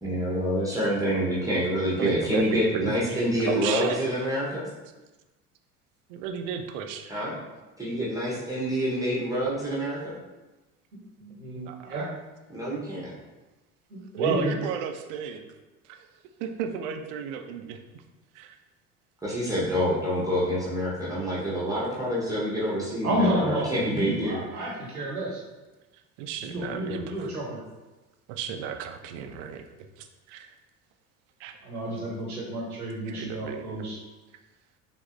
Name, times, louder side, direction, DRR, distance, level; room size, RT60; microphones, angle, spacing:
voice 1, 0.0-4.7 7.1-7.4 7.8-10.2 12.5-13.1 19.2-24.4, equal, 10° right, -7 dB, 1.1 m, -27 dB
voice 2, 2.0-3.2 3.5-4.0 6.1-7.3 11.7-12.1 14.1-15.5 15.8-16.1 16.4-17.8 18.3-18.6 26.2-27.3 28.3-30.5 31.4-31.6 33.0-33.8, right 7 dB, 55° right, 6 dB, 0.6 m, -33 dB
voice 3, 11.2-12.1 13.9-14.5 23.0-25.4 26.4-27.6 31.6-34.0, right 1 dB, 90° right, -3 dB, 1.0 m, -30 dB
5.2 x 2.8 x 2.5 m, 1.1 s
figure-of-eight pair, 65°, 43 cm